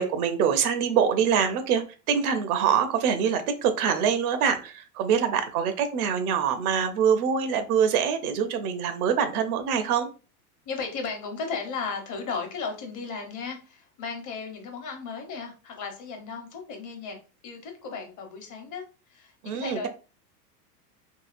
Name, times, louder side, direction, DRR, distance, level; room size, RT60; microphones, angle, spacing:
voice 1, 0.0-10.1 19.4-19.9, right 7 dB, 65° right, 0.7 m, -24 dB
voice 2, 10.6-17.2 17.4-18.8 19.1-19.9, left 5 dB, 40° left, 1.0 m, -35 dB
2.8 x 2.6 x 2.5 m
hypercardioid pair, 110°, 48 cm